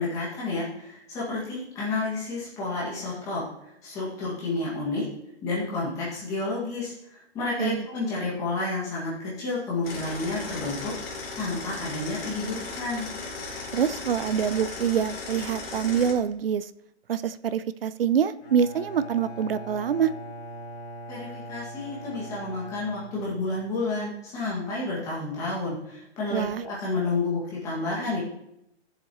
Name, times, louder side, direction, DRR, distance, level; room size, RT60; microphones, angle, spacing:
voice 1, 0.0-3.4 3.8-5.1 5.4-10.9 11.3-13.1 21.1-28.2, left 3 dB, 10° left, -7 dB, 1.9 m, -30 dB
sound 1, 9.8-16.1, left 4 dB, 55° left, 2.4 m, -37 dB
voice 2, 13.7-16.6 17.1-20.1 26.3-26.6, right 8 dB, 55° right, 16 dB, 0.5 m, -25 dB
Bowed string instrument, 18.4-23.9, equal, 80° left, 2.7 m, -41 dB
13.5 x 7.3 x 3.0 m, 0.79 s
hypercardioid pair, 180°, 34 cm